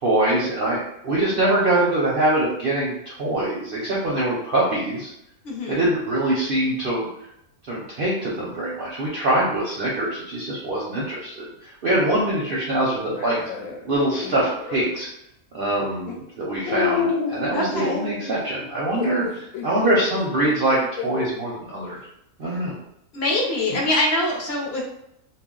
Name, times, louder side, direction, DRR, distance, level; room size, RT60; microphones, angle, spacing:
voice 1, 0.0-5.1 5.7-7.1 7.7-13.4 13.8-15.1 15.5-20.8 21.0-22.0 22.4-22.8, right 1 dB, 55° right, -5 dB, 0.6 m, -23 dB
voice 2, 5.4-5.8 17.5-18.1 23.1-24.8, left 1 dB, 60° left, -1 dB, 0.8 m, -24 dB
sound 1, 13.1-15.0 15.8-16.1 16.7-21.3 22.0-22.1 23.7-23.9, left 6 dB, 75° left, 1.0 m, -30 dB
2.5 x 2.0 x 3.7 m, 0.77 s
omnidirectional pair, 1.5 m